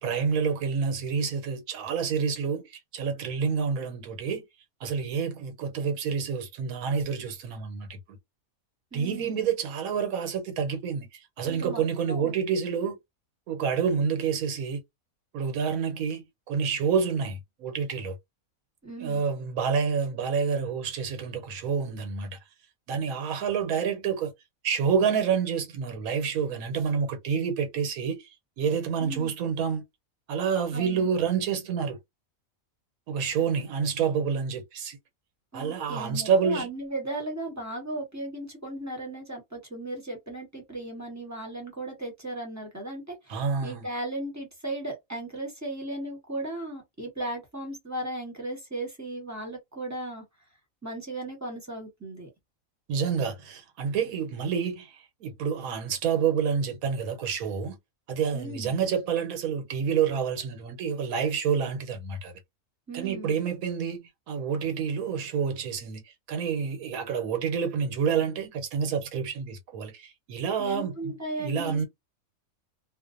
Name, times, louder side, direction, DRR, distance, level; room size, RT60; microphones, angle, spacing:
voice 1, 0.0-4.4 4.8-8.0 8.9-13.0 13.5-14.8 15.3-18.2 19.0-22.4 22.9-24.3 24.6-28.3 28.6-29.8 30.3-32.0 33.1-35.0 35.5-36.7 43.3-43.9 52.9-57.8 58.1-62.3 62.9-64.0 64.3-66.0 66.3-71.8, right 6 dB, 80° right, 1.1 m, -28 dB
voice 2, 8.9-9.4 11.4-11.8 12.1-12.3 18.8-19.2 29.0-29.3 30.7-31.1 35.5-50.2 50.8-52.3 58.3-58.8 62.9-63.3 70.6-71.8, right 1 dB, 15° right, 0.8 m, -36 dB
2.5 x 2.1 x 2.5 m
omnidirectional pair, 1.5 m